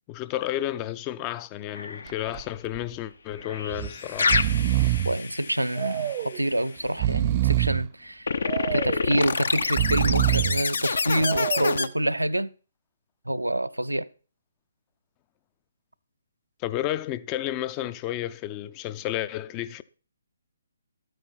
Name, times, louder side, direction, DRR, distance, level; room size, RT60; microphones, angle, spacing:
voice 1, 0.1-4.3 16.6-19.8, left 13 dB, 20° left, 0.5 m, -31 dB
sound 1, 1.7-2.3 3.4-6.5 8.3-11.9, left 4 dB, 60° left, 0.7 m, -28 dB
Breathing, 2.1-2.4 2.7-2.8 3.7-3.9 4.2-5.2 5.8-6.4 6.9-7.9 8.5-9.1 9.6-10.6 11.2-11.8, right 14 dB, 30° right, 0.4 m, -25 dB
voice 2, 5.0-8.3 8.7-12.5 13.3-14.1, right 1 dB, 85° right, 0.5 m, -27 dB
12.5 x 9.2 x 4.3 m
figure-of-eight pair, 135°, 0 cm